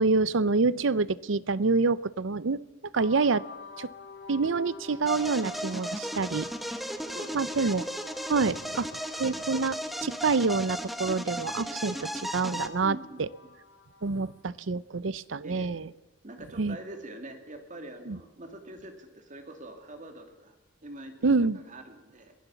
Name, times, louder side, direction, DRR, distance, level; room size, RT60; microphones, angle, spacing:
voice 1, 0.0-2.6 2.9-3.4 3.8-3.9 4.3-6.5 7.3-7.8 8.3-8.9 9.2-13.3 14.0-15.9 16.6-16.8 18.1-18.2 21.2-21.6, right 4 dB, 80° right, 19 dB, 0.7 m, -27 dB
sound 1, 2.9-14.5, left 4 dB, 70° left, 1.9 m, -49 dB
sound 2, 5.1-12.7, equal, ahead, 1.1 m, -35 dB
voice 2, 7.1-7.7 8.4-8.8 12.8-13.5 15.4-15.7 16.2-20.5 20.8-21.3 21.7-22.3, right 1 dB, 40° right, 6 dB, 2.5 m, -44 dB
22.5 x 16.5 x 7.1 m, 1.0 s
head